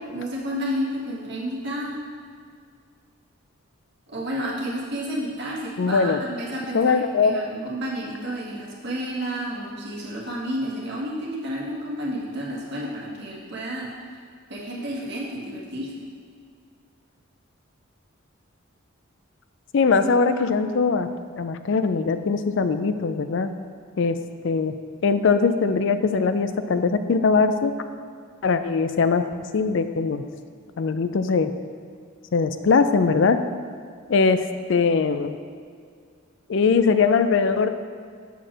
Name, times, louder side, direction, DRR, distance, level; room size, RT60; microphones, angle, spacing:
voice 1, 0.1-1.9 4.1-13.9 14.5-15.9, equal, 55° right, -4 dB, 1.6 m, -31 dB
voice 2, 5.8-6.2 6.7-7.3 19.7-21.1 21.3-23.5 24.0-24.2 24.4-24.7 25.0-27.7 28.4-29.3 29.5-30.2 30.8-31.5 32.3-33.4 34.1-35.4 36.5-37.7, left 4 dB, 60° left, 10 dB, 0.4 m, -21 dB
6.9 x 4.4 x 6.1 m, 2.1 s
head